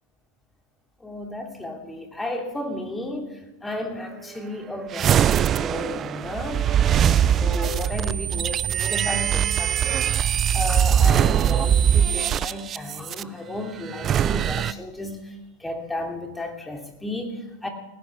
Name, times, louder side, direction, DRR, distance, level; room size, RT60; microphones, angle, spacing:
voice 1, 1.0-10.1 10.5-17.7, left 1 dB, 10° left, 2 dB, 2.6 m, -33 dB
sound 1, 4.9-13.2 13.9-14.7, right 9 dB, 30° right, 0.4 m, -21 dB
18.5 x 15.5 x 3.5 m, 1.0 s
hypercardioid pair, 90°, 0 cm